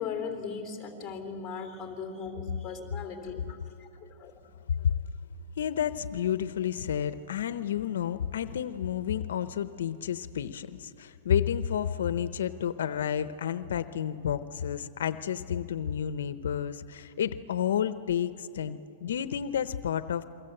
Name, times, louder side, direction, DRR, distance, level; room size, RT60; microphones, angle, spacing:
voice 1, 0.0-3.9 4.2-4.3, left 5 dB, 15° left, 4 dB, 3.4 m, -38 dB
voice 2, 5.6-20.2, left 9 dB, 75° left, 12 dB, 0.8 m, -30 dB
28.5 x 23.0 x 7.9 m, 2.9 s
hypercardioid pair, 160°, 0 cm